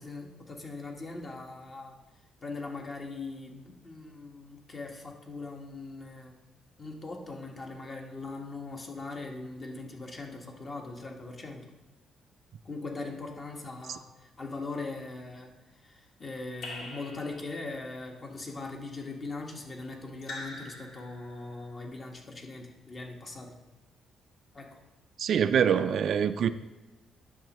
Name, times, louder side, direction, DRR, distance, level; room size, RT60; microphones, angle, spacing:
voice 1, 0.0-2.0 2.4-6.3 6.8-11.6 12.6-15.5 15.8-23.5 24.5-24.8, left 3 dB, 35° left, 1.3 m, -40 dB
Raindrop / Drip, 16.6-17.8 20.2-21.6, left 2 dB, 80° left, 1.8 m, -43 dB
voice 2, 25.2-26.5, right 8 dB, 65° right, 0.3 m, -25 dB
10.5 x 6.3 x 3.0 m
cardioid pair, 90°, 0 cm